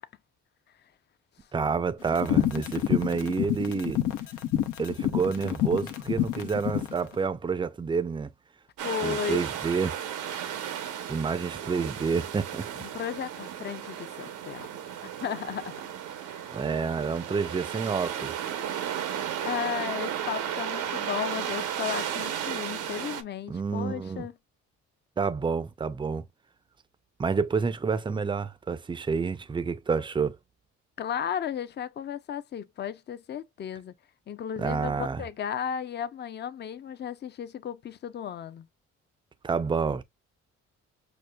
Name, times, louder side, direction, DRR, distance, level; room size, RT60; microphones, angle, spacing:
voice 1, 1.5-4.0 4.8-8.3 9.0-10.0 11.1-12.7 16.5-18.4 23.5-24.3 25.2-26.2 27.2-30.4 34.6-35.2 39.4-40.0, right 5 dB, 15° right, 0.4 m, -29 dB
sound 1, 2.1-6.9, left 12 dB, 90° left, 0.7 m, -27 dB
voice 2, 8.8-9.4 12.8-14.7 15.0-15.8 16.2-16.5 19.4-24.3 31.0-33.9 34.3-38.7, left 8 dB, 35° left, 0.5 m, -34 dB
sound 2, 8.8-23.2, right 9 dB, 90° right, 0.8 m, -34 dB
6.3 x 2.4 x 2.2 m
cardioid pair, 90°, 30 cm